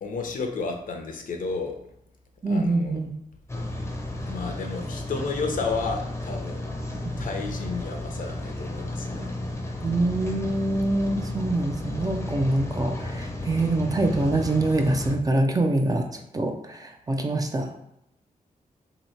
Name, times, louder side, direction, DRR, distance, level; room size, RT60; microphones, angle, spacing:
voice 1, 0.0-1.8 2.5-3.0 4.3-6.7 7.2-9.4 9.6-9.7, left 4 dB, 70° left, 3 dB, 0.6 m, -32 dB
voice 2, 2.4-3.1 7.0-7.3 9.8-17.7, right 2 dB, 25° right, 4 dB, 0.4 m, -25 dB
Rain, 3.5-15.2, left 1 dB, 20° left, 0.6 m, -33 dB
2.9 x 2.7 x 4.2 m, 0.79 s
wide cardioid pair, 125°, 15 cm